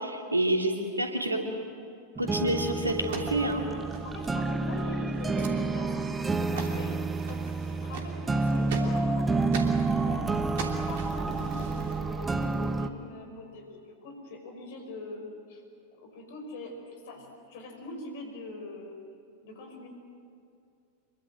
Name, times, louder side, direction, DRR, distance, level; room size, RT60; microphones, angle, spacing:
voice 1, 0.0-1.4 2.2-3.6, right 1 dB, 80° right, 2 dB, 3.1 m, -28 dB
sound 1, 2.2-12.9, right 3 dB, 15° right, 1.2 m, -29 dB
sound 2, 3.1-4.5 4.8-4.9 5.1-5.6 6.0-6.3 6.6-9.8 10.3-12.0, right 5 dB, 55° right, 2.9 m, -41 dB
voice 2, 4.0-6.0 6.2-9.3 9.9-15.6 15.9-19.0 19.4-19.9, left 2 dB, 55° left, 3 dB, 5.5 m, -42 dB
26.5 x 23.0 x 7.7 m, 2.5 s
figure-of-eight pair, 90°, 0 cm